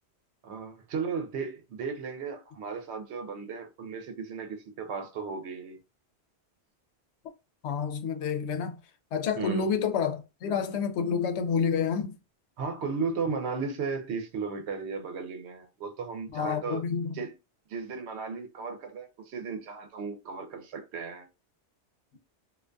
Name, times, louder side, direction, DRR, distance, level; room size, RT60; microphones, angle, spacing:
voice 1, 0.4-5.8 9.4-9.7 12.6-16.8 17.1-17.3 17.7-21.3, right 5 dB, 85° right, 0.9 m, -35 dB
voice 2, 7.6-8.8 9.1-12.2 16.3-17.2, left 6 dB, 90° left, 0.9 m, -29 dB
2.4 x 2.2 x 2.5 m
omnidirectional pair, 1.1 m